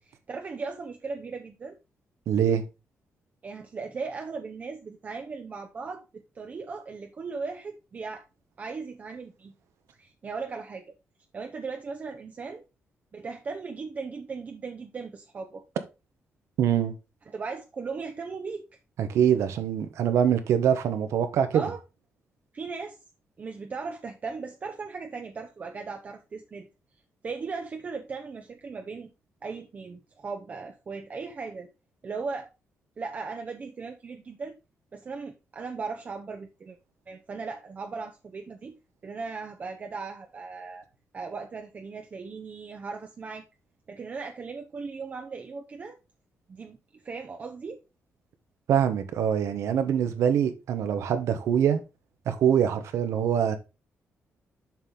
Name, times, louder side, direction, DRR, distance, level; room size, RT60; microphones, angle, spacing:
voice 1, 0.3-1.8 3.4-8.2 8.6-9.5 10.0-10.8 11.3-12.6 13.1-15.6 17.3-18.6 21.5-21.8 22.5-23.0 23.4-26.7 27.2-29.1 29.4-31.7 32.0-32.5 33.0-34.5 34.9-36.8 37.1-38.7 39.0-40.8 41.1-43.4 43.9-46.0 46.5-46.8 47.0-47.8, right 4 dB, 35° right, 0.7 m, -37 dB
voice 2, 2.3-2.6 16.6-16.9 19.0-21.6 48.7-51.8 52.3-53.6, right 9 dB, 80° right, 1.1 m, -24 dB
7.3 x 5.5 x 3.8 m
cardioid pair, 135°, 5 cm